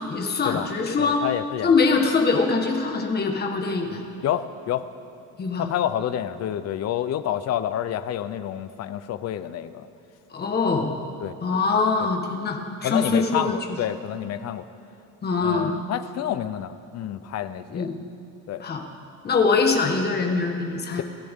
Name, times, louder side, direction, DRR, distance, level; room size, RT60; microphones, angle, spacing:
voice 1, 0.1-1.2 1.6-4.0 5.4-5.7 10.3-10.9 11.4-13.6 15.2-15.7 17.7-18.0 18.6-18.8 19.2-21.0, left 4 dB, 30° left, 3 dB, 1.5 m, -23 dB
voice 2, 1.0-1.8 4.2-4.9 5.6-9.9 11.2-11.4 12.8-14.6 15.4-17.9 18.5-18.6 21.0-21.1, left 11 dB, 50° left, 12 dB, 0.7 m, -28 dB
29.5 x 12.0 x 3.7 m, 2.8 s
cardioid pair, 170°, 33 cm